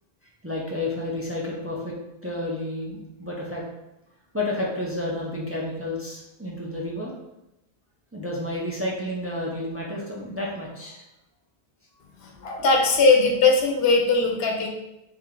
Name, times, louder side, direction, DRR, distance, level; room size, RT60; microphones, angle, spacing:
voice 1, 0.4-3.6 4.3-7.1 8.1-11.0, left 1 dB, 15° right, -4 dB, 0.6 m, -31 dB
voice 2, 12.2-14.7, left 3 dB, 70° left, 2 dB, 0.9 m, -20 dB
3.4 x 3.4 x 3.7 m, 0.90 s
omnidirectional pair, 1.1 m